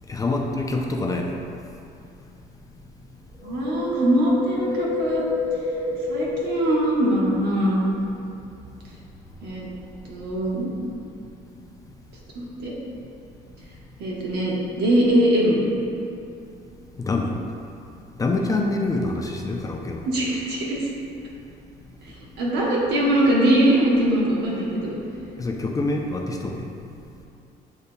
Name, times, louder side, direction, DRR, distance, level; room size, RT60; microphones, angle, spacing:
voice 1, 0.1-1.3 17.0-17.3 18.2-20.0 25.4-26.7, left 2 dB, 20° left, 1 dB, 0.4 m, -25 dB
Wind, 3.4-7.7 8.0-8.1, left 2 dB, 15° right, 1.2 m, -29 dB
voice 2, 3.4-5.3 6.1-8.1 9.4-9.7 10.1-10.7 12.3-12.7 14.0-15.5 20.0-20.9 22.0-25.0, right 1 dB, 75° right, -4 dB, 1.1 m, -22 dB
8.2 x 2.8 x 2.2 m, 2.6 s
cardioid pair, 110°, 17 cm